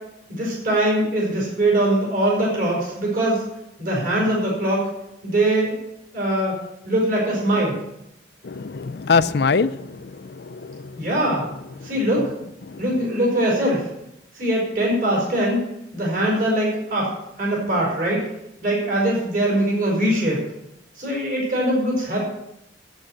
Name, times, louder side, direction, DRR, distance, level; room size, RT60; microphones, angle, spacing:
voice 1, 0.3-3.4 3.8-4.9 5.2-5.8 6.1-6.6 6.8-7.8 11.0-11.5 11.8-12.3 12.8-13.9 14.3-15.6 15.9-17.1 17.4-18.2 18.6-20.4 21.0-22.2, right 1 dB, 50° right, 4.8 m, -22 dB
voice 2, 8.4-11.0 11.8-11.9 12.7-12.8, left 5 dB, 60° left, 0.5 m, -23 dB
8.9 x 8.8 x 7.9 m
head